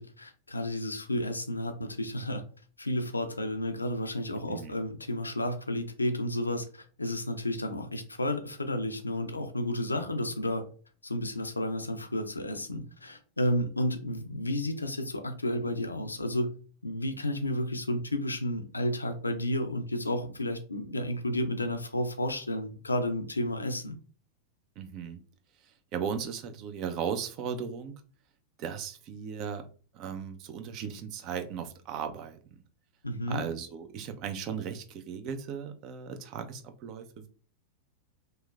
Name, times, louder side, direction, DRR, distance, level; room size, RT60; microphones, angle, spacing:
voice 1, 0.0-2.4 2.8-10.6 11.0-16.5 16.8-24.0 33.0-33.4, left 1 dB, 90° left, 8 dB, 0.4 m, -32 dB
voice 2, 24.8-25.2 25.6-28.0 28.6-29.7 29.9-32.6 33.3-37.3, right 7 dB, 40° right, 8 dB, 0.4 m, -37 dB
3.0 x 2.0 x 2.3 m, 0.41 s
figure-of-eight pair, 95°, 0 cm